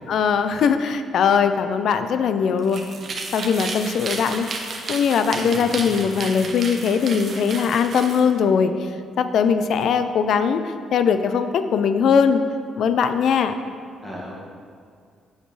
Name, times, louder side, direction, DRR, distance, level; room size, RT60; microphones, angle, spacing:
voice 1, 0.1-2.8 3.3-4.5 4.9-8.9 9.2-12.4 12.8-13.6, left 6 dB, 70° left, 9 dB, 0.4 m, -20 dB
sound 1, 2.6-8.2, right 3 dB, 50° right, 1.0 m, -32 dB
voice 2, 5.4-6.0 14.0-14.4, equal, 5° left, -5 dB, 1.7 m, -36 dB
7.9 x 6.5 x 3.2 m, 2.1 s
cardioid pair, 90°, 0 cm